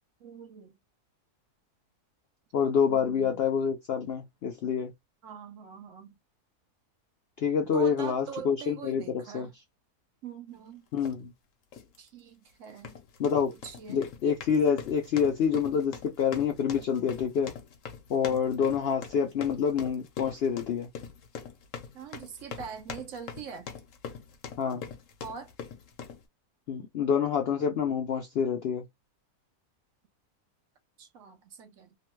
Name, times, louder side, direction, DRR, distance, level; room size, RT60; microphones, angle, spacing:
voice 1, 0.2-0.7 2.9-3.4 5.2-6.2 7.7-9.5 10.2-10.9 12.0-13.0 13.5-14.0 21.9-23.7 25.2-25.5 31.0-32.0, right 7 dB, 70° right, 0.8 m, -43 dB
voice 2, 2.5-4.9 7.4-9.5 10.9-11.3 13.2-13.5 13.9-17.5 18.1-20.9 24.6-24.8 26.7-28.8, left 7 dB, 80° left, 0.5 m, -27 dB
sound 1, 11.0-11.2 11.7-12.0 12.7-26.2, left 7 dB, 65° left, 1.0 m, -43 dB
2.9 x 2.2 x 3.0 m
omnidirectional pair, 1.6 m